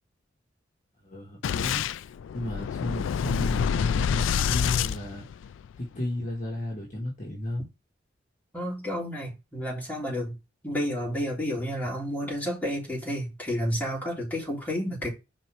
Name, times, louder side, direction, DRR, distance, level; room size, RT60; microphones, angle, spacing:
voice 1, 1.0-1.8 2.3-5.2 5.8-7.6, left 1 dB, 45° left, 1.6 m, -33 dB
Boom, 1.4-5.8, left 7 dB, 85° left, 0.3 m, -27 dB
voice 2, 8.5-10.4 10.6-15.1, equal, 10° left, 3.7 m, -31 dB
5.4 x 4.3 x 4.7 m
head